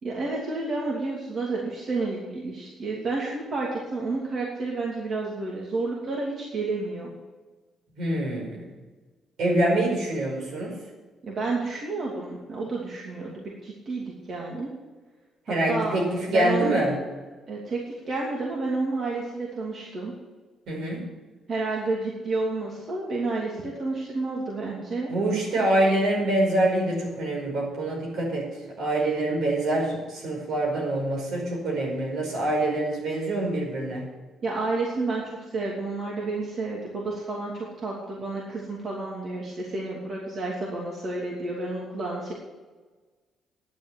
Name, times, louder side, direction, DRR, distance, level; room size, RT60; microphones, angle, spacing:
voice 1, 0.0-7.1 11.2-14.7 15.7-16.0 16.3-16.8 17.5-20.1 21.5-25.1 34.4-42.3, right 3 dB, 50° right, -3 dB, 2.8 m, -30 dB
voice 2, 8.0-8.6 9.4-10.7 15.5-16.9 20.7-21.0 25.1-28.5 28.8-34.0, right 1 dB, 75° right, 0 dB, 5.1 m, -25 dB
11.0 x 7.8 x 8.6 m, 1.3 s
cardioid pair, 90°, 0 cm